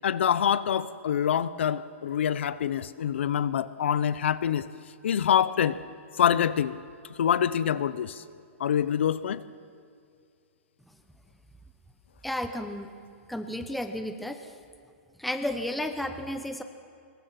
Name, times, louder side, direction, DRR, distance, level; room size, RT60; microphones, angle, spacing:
voice 1, 0.0-4.7 5.0-5.8 6.2-6.8 7.2-8.2 8.6-9.4, left 9 dB, 65° left, 16 dB, 0.8 m, -25 dB
voice 2, 12.2-12.9 13.3-14.5 15.2-16.6, left 1 dB, ahead, 7 dB, 0.7 m, -32 dB
24.5 x 22.0 x 6.0 m, 2.4 s
hypercardioid pair, 175°, 7 cm